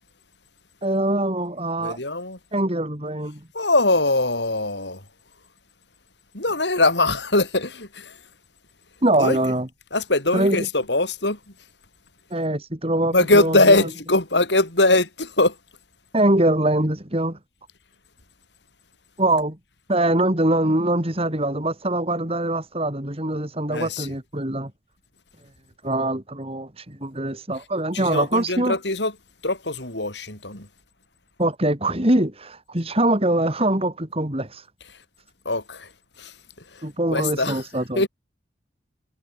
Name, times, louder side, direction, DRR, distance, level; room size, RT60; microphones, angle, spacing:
voice 1, 0.8-2.0 2.5-3.5 9.0-9.7 10.3-10.7 12.3-13.6 16.1-17.4 19.2-19.6 19.9-24.7 25.8-28.8 31.4-34.6 36.8-38.0, right 1 dB, 35° right, 3.3 m, -23 dB
voice 2, 1.8-2.4 3.5-5.0 6.3-8.2 9.2-9.6 9.9-11.4 13.1-15.6 23.7-24.1 27.9-29.1 29.4-30.7 34.9-35.0 35.4-35.9 36.2-37.6 37.9-38.1, left 2 dB, 75° left, 6.7 m, -22 dB
head